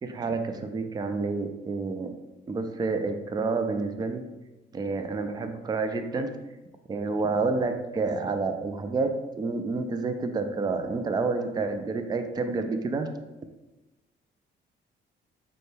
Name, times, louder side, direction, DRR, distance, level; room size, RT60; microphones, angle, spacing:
voice 1, 0.0-2.2 2.5-4.3 4.7-6.4 6.9-13.1, right 3 dB, 20° right, 7 dB, 0.3 m, -29 dB
5.2 x 2.2 x 3.2 m, 1.0 s
cardioid pair, 90°, 20 cm